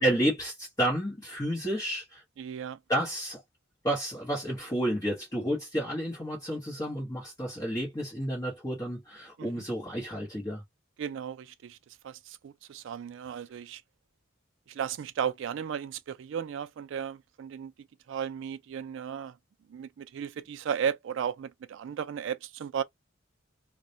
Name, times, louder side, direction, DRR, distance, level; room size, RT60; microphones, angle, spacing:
voice 1, 0.0-2.2 2.9-3.4 3.8-10.6, equal, 20° left, 0.9 m, -31 dB
voice 2, 2.4-2.8 9.4-9.6 11.0-11.8 12.0-13.8 14.7-17.7 18.1-19.4 19.7-22.8, right 8 dB, 65° right, 0.3 m, -35 dB
2.1 x 2.1 x 2.6 m
head